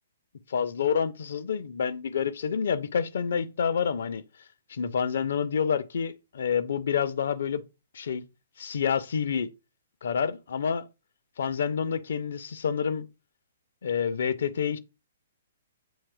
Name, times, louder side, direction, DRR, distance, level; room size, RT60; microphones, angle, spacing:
voice 1, 0.5-4.2 4.7-7.6 7.9-8.3 8.6-9.5 10.0-10.8 11.4-13.1 13.8-14.8, left 7 dB, 55° left, 0.4 m, -28 dB
7.2 x 2.9 x 2.2 m
figure-of-eight pair, 120°, 0 cm